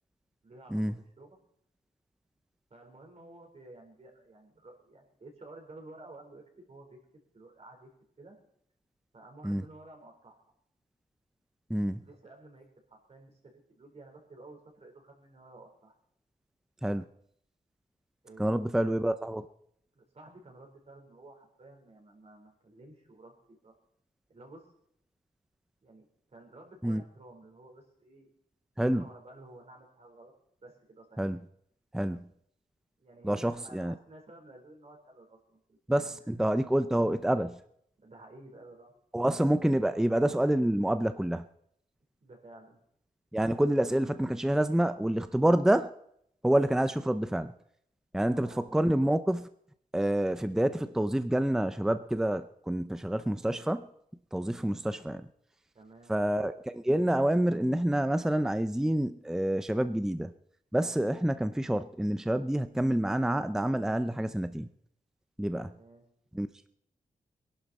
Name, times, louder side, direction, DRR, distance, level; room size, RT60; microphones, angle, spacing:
voice 1, 0.4-1.4 2.7-7.9 8.2-8.4 9.1-10.4 12.0-16.0 18.2-19.1 19.9-23.7 24.3-24.6 25.8-28.3 28.9-30.3 30.6-31.2 33.0-36.4 38.0-38.9 42.2-42.8 48.3-48.8 55.7-56.1 65.7-66.0, right 2 dB, 45° right, 2 dB, 4.2 m, -52 dB
voice 2, 11.7-12.0 16.8-17.0 18.4-19.5 26.8-27.0 28.8-29.1 31.2-31.4 31.9-32.3 33.2-33.9 35.9-37.6 39.1-41.5 43.3-45.9 46.4-47.5 48.1-49.5 49.9-53.9 54.3-55.3 56.1-60.3 60.7-64.7 65.4-65.7 66.3-66.5, right 1 dB, 5° right, 11 dB, 0.5 m, -27 dB
22.5 x 11.5 x 4.2 m, 0.70 s
wide cardioid pair, 135°, 15 cm